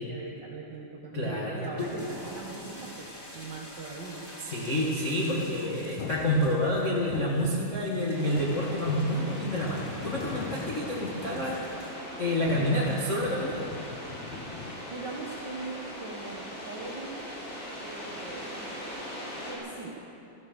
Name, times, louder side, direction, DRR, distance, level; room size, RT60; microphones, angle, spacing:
voice 1, 0.0-4.5 11.3-11.7 14.8-17.3 17.8-18.8 19.5-20.0, right 3 dB, 85° right, -1 dB, 0.9 m, -41 dB
voice 2, 1.1-1.9 4.5-11.6 12.2-13.6, left 1 dB, 50° left, -4 dB, 0.8 m, -28 dB
sound 1, 1.8-19.1, equal, 5° left, 2.3 m, -49 dB
sound 2, 6.0-11.8 12.3-14.7, left 7 dB, 75° left, 1.7 m, -41 dB
sound 3, 8.1-19.6, equal, 30° left, 3.7 m, -40 dB
14.0 x 14.0 x 6.6 m, 2.8 s
omnidirectional pair, 4.0 m